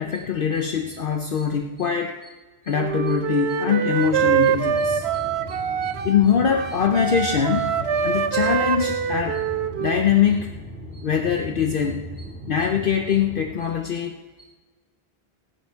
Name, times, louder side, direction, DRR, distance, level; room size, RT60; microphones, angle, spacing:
voice 1, 0.0-2.2 2.6-9.4 9.8-10.5 10.9-14.2, left 7 dB, 60° left, 4 dB, 0.9 m, -23 dB
Wind instrument woodwind instrument, 2.7-6.2 6.5-10.0, right 8 dB, 85° right, 0.9 m, -24 dB
sound 1, 4.0-13.5, equal, 15° left, 4.5 m, -38 dB
16.5 x 10.5 x 4.6 m, 1.3 s
omnidirectional pair, 1.0 m